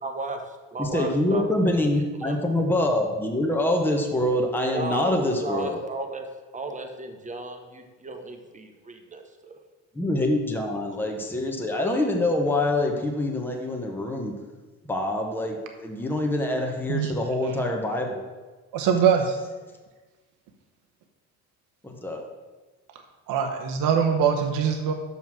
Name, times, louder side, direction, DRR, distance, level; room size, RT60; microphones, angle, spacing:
voice 1, 0.0-1.5 2.2-2.4 4.7-6.3 6.5-9.6, right 3 dB, 25° right, 5 dB, 1.1 m, -35 dB
voice 2, 0.8-5.8 9.9-14.3 14.9-18.3 21.8-22.2, left 1 dB, 5° left, 1 dB, 1.0 m, -25 dB
voice 3, 18.7-19.4 23.3-24.9, right 7 dB, 80° right, 4 dB, 0.9 m, -22 dB
6.1 x 5.6 x 6.1 m, 1.3 s
cardioid pair, 95°, 33 cm